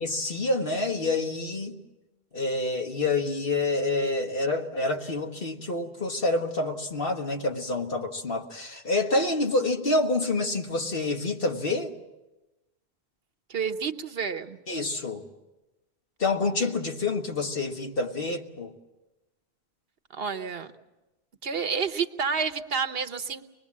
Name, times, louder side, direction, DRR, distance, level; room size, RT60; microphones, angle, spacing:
voice 1, 0.0-1.8 2.3-11.9 14.7-15.2 16.2-18.7, left 2 dB, 60° left, 1.8 m, -27 dB
voice 2, 13.5-14.6 20.1-20.7 21.4-23.4, right 6 dB, 65° right, 1.2 m, -29 dB
25.0 x 21.0 x 7.4 m
omnidirectional pair, 1.1 m